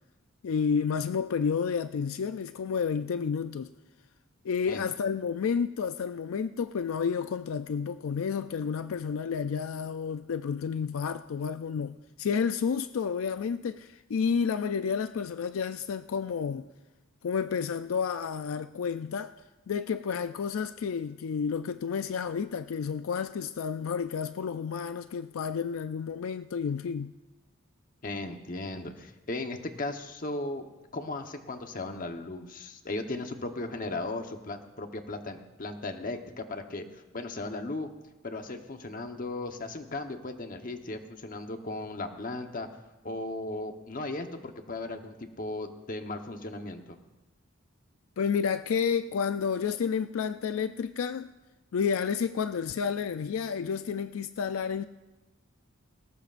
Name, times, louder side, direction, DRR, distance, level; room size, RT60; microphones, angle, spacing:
voice 1, 0.4-3.7 4.4-16.7 17.2-19.3 19.7-27.1 48.2-51.3 51.7-54.8, left 6 dB, 80° left, 0.4 m, -30 dB
voice 2, 28.0-30.7 30.9-37.9 38.2-42.7 43.0-47.0, left 2 dB, 40° left, 1.0 m, -36 dB
19.5 x 18.0 x 2.5 m
head